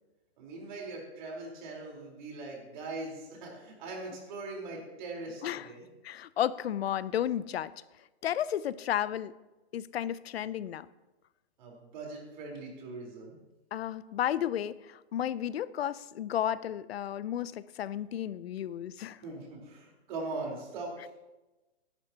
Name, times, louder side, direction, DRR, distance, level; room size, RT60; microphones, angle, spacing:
voice 1, 0.4-5.8 11.6-13.4 19.2-21.1, right 3 dB, 45° right, -1 dB, 4.2 m, -41 dB
voice 2, 6.0-7.7 8.2-9.3 9.7-10.9 13.7-19.2, left 11 dB, 65° left, 18 dB, 0.6 m, -33 dB
19.0 x 11.5 x 2.9 m, 1.1 s
hypercardioid pair, 160°, 33 cm